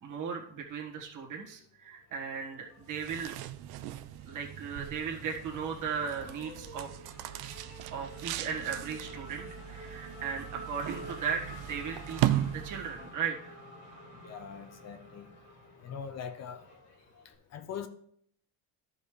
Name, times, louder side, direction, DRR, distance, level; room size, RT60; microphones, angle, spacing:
voice 1, 0.0-3.3 4.2-6.9 7.4-7.6 7.9-13.5, right 6 dB, 50° right, 1.6 m, -37 dB
Race car auto racing / Accelerating revving vroom, 2.3-3.3 3.7-17.3, equal, 75° left, 2.8 m, -49 dB
sound 1, 2.8-13.2, right 13 dB, 65° right, 0.6 m, -37 dB
voice 2, 14.2-15.3 15.8-16.6 17.5-17.9, left 7 dB, 40° left, 0.5 m, -41 dB
13.5 x 5.4 x 3.2 m
cardioid pair, 160°, 41 cm